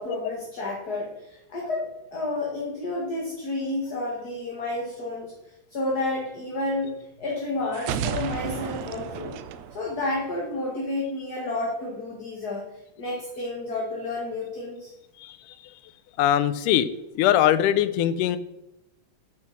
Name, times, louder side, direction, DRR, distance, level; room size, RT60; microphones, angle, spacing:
voice 1, 0.0-5.3 5.7-9.3 9.7-12.7 13.0-14.9, left 2 dB, 35° left, -2 dB, 2.1 m, -30 dB
sound 1, 7.7-10.6, right 8 dB, 75° right, 1.7 m, -32 dB
voice 2, 16.2-16.9 17.2-18.4, left 11 dB, 90° left, 14 dB, 2.2 m, -21 dB
9.4 x 8.5 x 6.0 m, 0.88 s
omnidirectional pair, 3.7 m